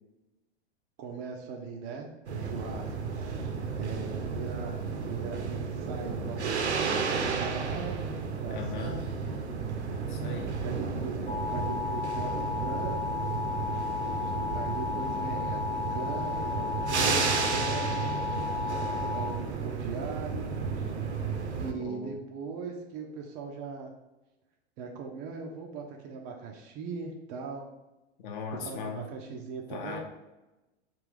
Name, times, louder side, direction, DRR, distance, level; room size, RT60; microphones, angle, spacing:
voice 1, 1.0-3.5 3.8-9.0 10.6-13.2 14.1-18.1 18.6-18.7 19.1-20.5 20.8-20.9 21.6-23.9 24.8-27.7 28.5-30.0, right 5 dB, 25° right, 1 dB, 0.3 m, -40 dB
sound 1, 2.3-21.7, right 5 dB, 80° right, 0.6 m, -33 dB
voice 2, 8.5-9.0 10.1-10.6 21.8-22.2 28.2-29.1 29.7-30.0, left 4 dB, 45° left, 4 dB, 0.7 m, -38 dB
sound 2, 11.3-19.3, left 5 dB, 90° left, 0.7 m, -33 dB
3.7 x 2.4 x 3.3 m, 1.0 s
figure-of-eight pair, 95°, 33 cm